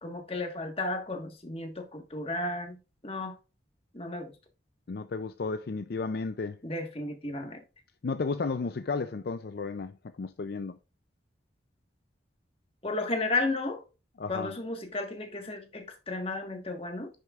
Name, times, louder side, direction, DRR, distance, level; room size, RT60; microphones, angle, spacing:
voice 1, 0.0-2.8 3.0-3.3 3.9-4.3 6.6-7.6 12.8-13.8 14.3-17.1, left 2 dB, 30° left, 1.5 m, -33 dB
voice 2, 4.9-6.6 8.0-10.8 14.2-14.5, left 4 dB, 55° left, 0.4 m, -33 dB
10.0 x 6.4 x 2.4 m
head